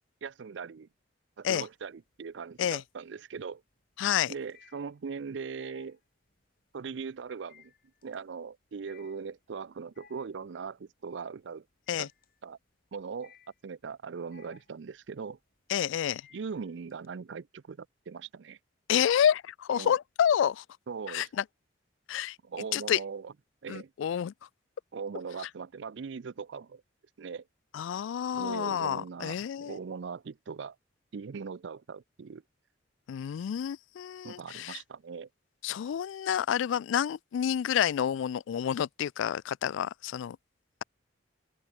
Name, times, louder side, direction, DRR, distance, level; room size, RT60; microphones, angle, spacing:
voice 1, 0.2-0.9 1.4-3.6 4.3-6.0 6.7-7.7 8.0-11.7 12.0-12.1 12.4-12.6 12.9-13.3 13.6-15.4 16.3-18.6 19.7-20.0 20.9-21.3 22.4-23.3 23.6-23.9 24.9-26.8 27.2-27.5 28.3-30.8 31.1-32.4 34.2-35.3, right 5 dB, 65° right, 0.4 m, -40 dB
sound 1, 1.6-2.2 2.6-17.1, left 6 dB, 50° left, 3.9 m, -61 dB
voice 2, 4.0-4.3 11.9-12.1 15.7-16.2 18.9-20.6 21.1-21.4 22.1-22.4 22.7-23.0 23.7-24.3 27.7-29.8 33.1-34.8 35.6-40.4, left 9 dB, 75° left, 0.3 m, -29 dB
open air
head